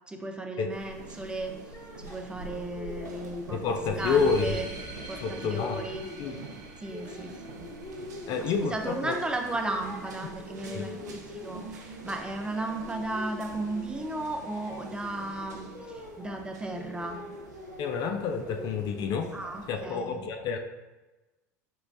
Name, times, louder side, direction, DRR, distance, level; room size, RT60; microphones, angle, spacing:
voice 1, 0.1-3.6 4.0-4.7 5.1-6.1 6.8-7.4 8.4-17.2 19.3-20.2, right 2 dB, 10° right, 3 dB, 0.5 m, -35 dB
sound 1, 0.7-19.9, right 3 dB, 85° right, 0.5 m, -45 dB
sound 2, 1.5-9.1 9.5-11.7 12.0-16.4 16.7-18.1 18.4-20.0, left 2 dB, 35° left, 0.9 m, -45 dB
voice 2, 3.5-4.6 5.2-5.8 6.2-6.4 8.3-9.1 10.6-10.8 17.8-19.4 19.7-20.6, left 5 dB, 50° left, 6 dB, 0.4 m, -29 dB
sound 3, 4.0-9.0, right 3 dB, 45° right, 0.7 m, -45 dB
4.6 x 3.0 x 2.6 m, 1.1 s
hypercardioid pair, 85°, 9 cm